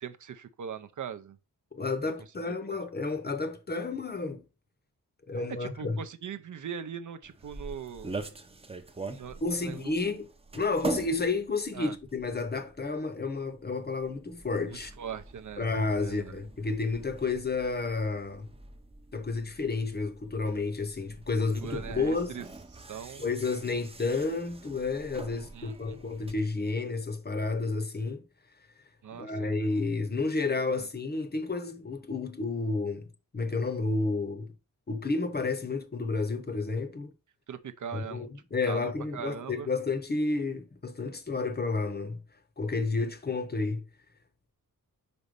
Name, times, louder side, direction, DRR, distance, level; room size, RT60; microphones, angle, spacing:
voice 1, 0.0-1.4 5.6-8.2 9.1-9.4 9.6-9.9 11.7-12.0 14.7-15.7 16.0-16.4 21.6-22.4 22.7-23.2 25.5-25.7 29.0-29.5 30.8-30.9 37.5-38.3 38.7-39.7, right 7 dB, 55° right, 0.6 m, -40 dB
voice 2, 1.7-4.4 5.3-6.0 9.4-10.3 10.5-14.9 15.6-18.5 19.1-22.4 23.2-28.2 29.1-33.1 33.3-34.5 34.9-37.1 37.9-42.2 42.6-43.9, left 3 dB, 30° left, 0.8 m, -31 dB
sound 1, 7.2-26.3, right 3 dB, 15° right, 0.6 m, -44 dB
5.3 x 4.1 x 5.2 m
wide cardioid pair, 140°, 35 cm